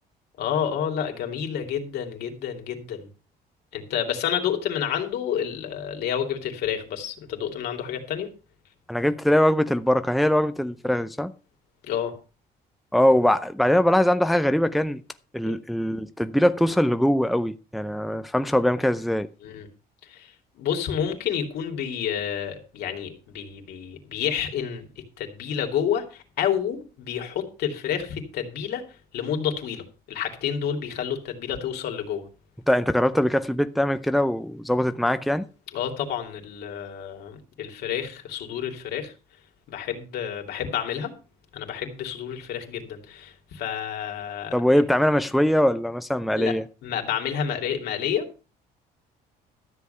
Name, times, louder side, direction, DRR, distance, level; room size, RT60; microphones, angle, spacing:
voice 1, 0.4-3.1 3.7-8.3 11.8-12.1 15.4-15.6 19.4-19.7 20.0-24.8 25.2-28.8 29.1-32.2 35.7-39.1 39.7-41.1 41.5-44.5 46.4-46.6 46.8-48.2, left 8 dB, 75° left, 2.9 m, -29 dB
voice 2, 8.9-11.3 12.9-15.0 15.3-19.3 32.7-35.5 44.5-46.6, equal, ahead, 0.6 m, -22 dB
13.0 x 7.4 x 5.7 m
cardioid pair, 110°, 17 cm